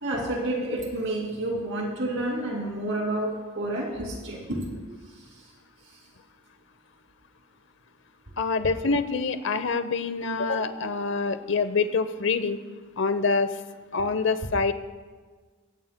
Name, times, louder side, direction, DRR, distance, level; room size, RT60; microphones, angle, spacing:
voice 1, 0.0-4.8 5.1-5.4 5.8-6.0, right 1 dB, 60° right, 0 dB, 2.6 m, -30 dB
voice 2, 8.4-12.6 13.0-13.5 13.9-14.7, left 4 dB, 60° left, 11 dB, 0.8 m, -25 dB
22.0 x 18.0 x 2.2 m, 1.4 s
head